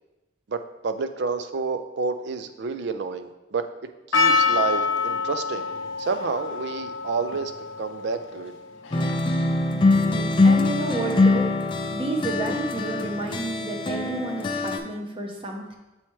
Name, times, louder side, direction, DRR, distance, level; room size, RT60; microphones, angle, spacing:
voice 1, 0.5-3.7 4.1-5.7 6.0-7.5 7.8-8.5, right 4 dB, 60° right, 9 dB, 0.4 m, -29 dB
Percussion, 4.1-9.4, left 4 dB, 85° left, 0.6 m, -26 dB
sound 1, 8.9-14.8, left 2 dB, 25° left, 0.4 m, -23 dB
voice 2, 9.9-11.6 11.9-15.8, right 2 dB, 30° right, 1 dB, 0.7 m, -31 dB
7.0 x 4.3 x 3.1 m, 1.0 s
head